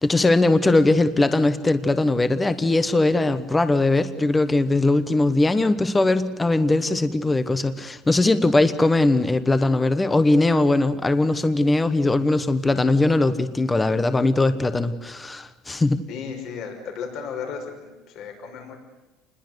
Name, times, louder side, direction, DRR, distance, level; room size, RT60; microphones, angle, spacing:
voice 1, 0.0-16.0, left 2 dB, 10° left, 12 dB, 1.2 m, -20 dB
voice 2, 16.1-18.8, left 6 dB, 55° left, 4 dB, 5.8 m, -34 dB
29.0 x 21.5 x 8.1 m, 1.1 s
cardioid pair, 160°, 0 cm